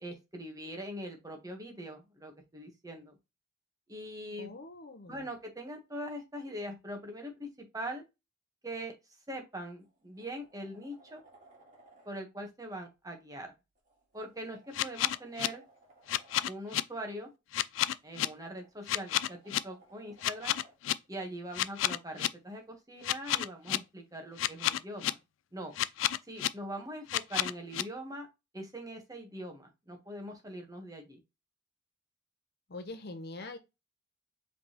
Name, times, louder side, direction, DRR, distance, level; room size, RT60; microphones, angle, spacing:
voice 1, 0.0-3.1 3.9-4.5 5.1-8.0 8.6-8.9 9.3-11.2 12.0-13.5 14.1-15.6 16.5-17.3 18.0-20.5 21.1-25.2 25.5-25.7 26.3-28.3 28.5-31.2, right 1 dB, 20° right, 1.1 m, -42 dB
voice 2, 4.4-5.3 32.7-33.6, left 2 dB, 55° left, 0.8 m, -43 dB
sound 1, 9.2-9.4 9.8-12.1 13.7-16.5 18.0-20.8 23.1-23.2, right 2 dB, 40° right, 1.8 m, -61 dB
sound 2, 14.7-15.5 16.1-16.8 17.5-18.3 18.9-19.6 20.2-20.9 21.5-22.3 23.0-23.8 24.4-25.1 25.7-26.5 27.1-27.8, left 13 dB, 75° left, 0.3 m, -29 dB
5.0 x 3.4 x 2.9 m
head